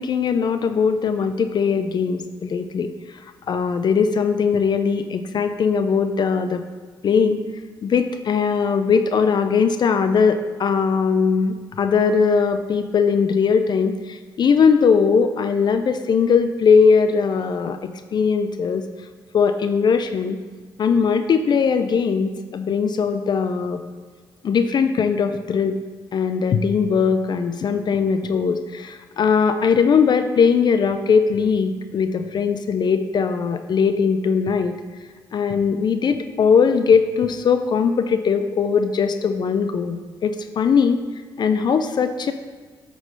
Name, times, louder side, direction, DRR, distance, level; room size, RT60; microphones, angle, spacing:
voice 1, 0.0-6.6 7.0-7.4 7.8-18.9 19.3-20.4 20.8-23.8 24.4-25.8 26.1-34.7 35.3-41.0 41.4-42.3, left 6 dB, 50° left, 9 dB, 0.5 m, -20 dB
8.0 x 3.8 x 6.5 m, 1.5 s
supercardioid pair, 65°, 9 cm